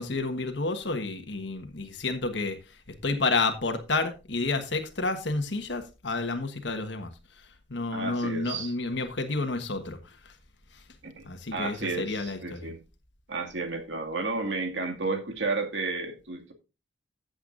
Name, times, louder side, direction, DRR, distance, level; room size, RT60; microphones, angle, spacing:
voice 1, 0.0-2.6 3.0-7.1 7.7-10.3 10.7-10.8 11.2-12.7, left 3 dB, 70° left, 1.3 m, -30 dB
voice 2, 7.9-8.7 11.0-11.2 11.5-12.8 13.3-16.5, right 3 dB, 80° right, 2.2 m, -32 dB
15.0 x 8.0 x 2.6 m
head